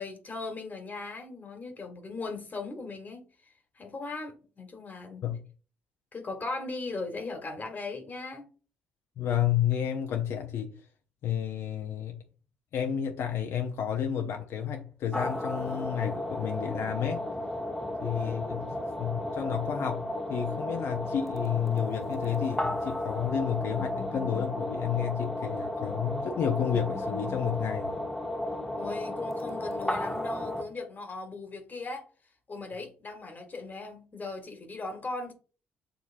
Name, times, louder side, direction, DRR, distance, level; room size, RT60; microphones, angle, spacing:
voice 1, 0.0-3.2 3.7-5.3 6.1-8.4 18.2-18.6 28.8-32.0 32.5-35.3, left 3 dB, 40° left, 1.3 m, -38 dB
voice 2, 9.2-10.8 11.2-12.2 12.7-17.2 18.0-18.7 19.0-28.0, left 9 dB, 65° left, 0.6 m, -31 dB
sound 1, 15.1-30.6, left 1 dB, 5° left, 0.9 m, -34 dB
6.1 x 2.9 x 2.5 m
hypercardioid pair, 50°, 5 cm